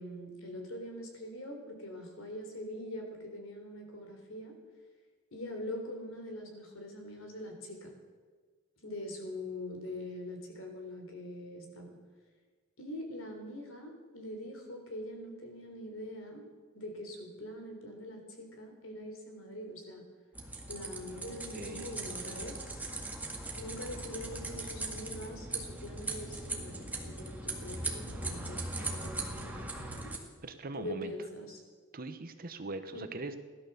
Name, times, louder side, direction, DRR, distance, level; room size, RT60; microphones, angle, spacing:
voice 1, 0.0-4.6 5.3-7.9 8.8-12.0 12.8-16.5 16.7-20.1 20.7-22.8 23.6-30.1 30.7-31.6 32.9-33.1, left 1 dB, 70° left, 3 dB, 3.6 m, -43 dB
sound 1, 20.4-30.2, right 2 dB, 10° right, 1.9 m, -39 dB
voice 2, 21.5-22.0 29.0-30.1 30.4-31.1 31.9-33.4, right 2 dB, 45° right, 9 dB, 1.0 m, -42 dB
17.0 x 12.0 x 6.9 m, 1.5 s
head